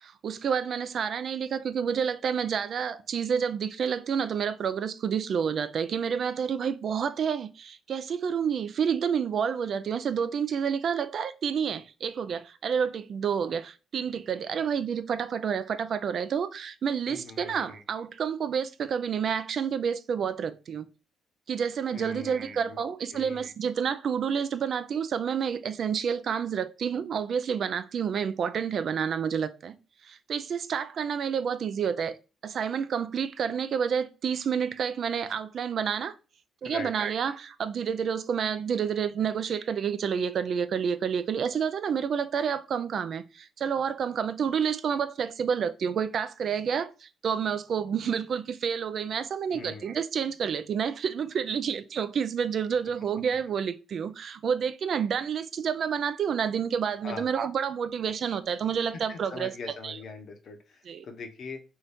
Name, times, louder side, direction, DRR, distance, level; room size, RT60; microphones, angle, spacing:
voice 1, 0.0-20.9 21.5-29.8 30.0-32.2 32.4-36.1 36.6-59.5 59.8-60.0 60.9-61.1, right 7 dB, 60° right, 0.3 m, -29 dB
voice 2, 17.1-17.8 21.9-22.8 23.1-23.5 36.6-36.9 49.5-49.9 57.0-57.3 59.1-61.6, left 4 dB, 60° left, 0.8 m, -42 dB
2.7 x 2.7 x 3.4 m
cardioid pair, 90°, 0 cm